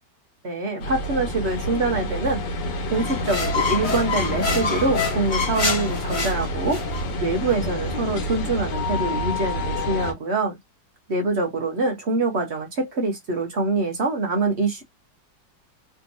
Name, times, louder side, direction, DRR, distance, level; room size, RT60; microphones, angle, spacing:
voice 1, 0.4-2.4 2.9-10.6 11.1-14.8, right 3 dB, 50° right, 0.9 m, -25 dB
sound 1, 0.8-10.1, left 1 dB, 70° left, 1.7 m, -28 dB
sound 2, 3.0-7.0, left 4 dB, 40° left, 0.7 m, -27 dB
3.5 x 2.8 x 2.6 m
omnidirectional pair, 2.0 m